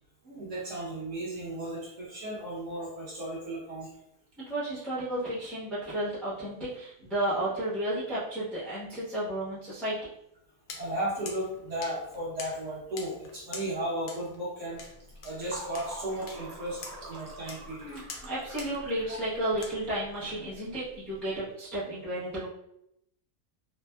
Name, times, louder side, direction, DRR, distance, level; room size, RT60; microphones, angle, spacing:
voice 1, 0.2-3.9 10.7-14.8 15.2-16.8 17.1-18.0 19.1-19.2, right 1 dB, 55° right, -5 dB, 1.0 m, -35 dB
voice 2, 4.5-10.0 17.8-22.5, right 1 dB, ahead, -9 dB, 0.4 m, -32 dB
sound 1, 10.7-19.7, left 4 dB, 70° left, 0.9 m, -47 dB
Fill (with liquid), 14.8-21.2, right 1 dB, 85° right, 1.3 m, -46 dB
3.3 x 2.0 x 2.2 m, 0.78 s
omnidirectional pair, 1.7 m